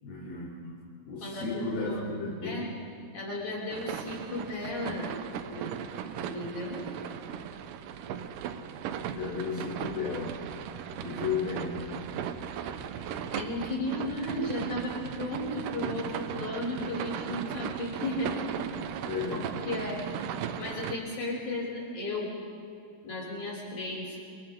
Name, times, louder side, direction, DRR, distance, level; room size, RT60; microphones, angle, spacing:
voice 1, 0.0-2.7 9.1-10.4 11.0-11.9 19.1-19.5, left 4 dB, 60° left, -7 dB, 5.1 m, -34 dB
voice 2, 1.2-2.8 3.1-5.2 5.5-5.7 6.1-6.8 13.3-18.5 19.3-20.0 20.6-22.3 23.0-24.2, left 1 dB, 45° left, -5 dB, 7.4 m, -35 dB
sound 1, 3.7-20.9, right 8 dB, 85° right, 1.8 m, -37 dB
30.0 x 29.0 x 3.8 m, 2.5 s
omnidirectional pair, 5.0 m